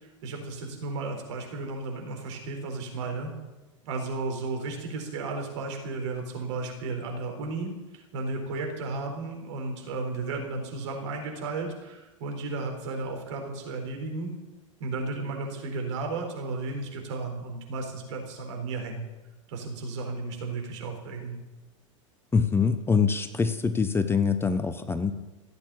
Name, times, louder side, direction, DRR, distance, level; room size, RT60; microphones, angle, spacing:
voice 1, 0.2-3.3 3.8-14.3 14.8-19.1 19.5-21.4, right 3 dB, 60° right, 3 dB, 4.2 m, -34 dB
voice 2, 22.3-25.1, left 5 dB, 15° left, 10 dB, 1.0 m, -24 dB
15.5 x 8.7 x 8.7 m, 1.1 s
figure-of-eight pair, 90°, 17 cm